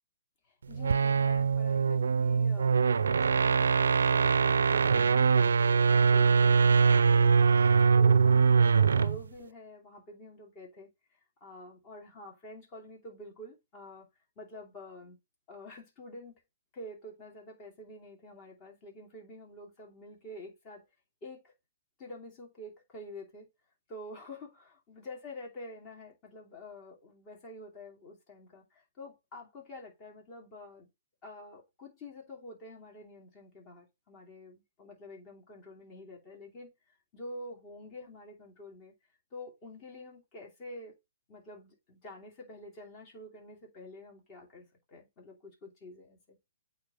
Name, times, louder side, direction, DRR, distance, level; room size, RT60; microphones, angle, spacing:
voice 1, 0.4-6.6 6.9-14.1 14.4-15.2 15.5-16.4 16.7-20.8 21.2-21.5 22.0-23.5 23.9-30.9 31.2-38.9 39.3-40.9 41.3-46.4, left 1 dB, 30° left, 2.8 m, -48 dB
sound 1, 0.7-9.2, right 5 dB, 85° right, 0.4 m, -23 dB
8.7 x 3.5 x 3.6 m
hypercardioid pair, 150°, 0 cm